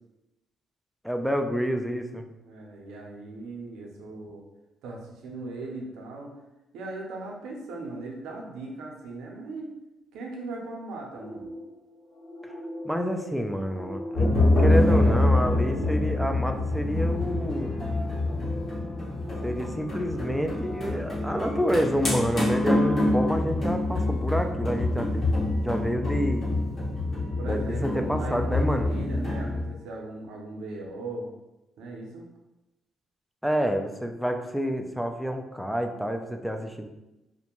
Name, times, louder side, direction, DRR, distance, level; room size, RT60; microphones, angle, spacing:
voice 1, 1.0-2.3 12.8-14.3 14.6-17.7 19.4-25.3 25.6-26.4 27.4-28.9 33.4-36.9, equal, ahead, 5 dB, 0.3 m, -28 dB
voice 2, 2.4-4.4 4.8-6.3 6.7-9.7 10.1-11.5 27.4-31.3 31.8-32.3, right 2 dB, 90° right, 0 dB, 0.6 m, -38 dB
sound 1, 11.1-22.5, left 1 dB, 85° left, 0.8 m, -42 dB
sound 2, 14.1-29.6, left 2 dB, 45° left, 1.2 m, -26 dB
2.4 x 2.1 x 2.9 m, 0.97 s
cardioid pair, 90°, 0 cm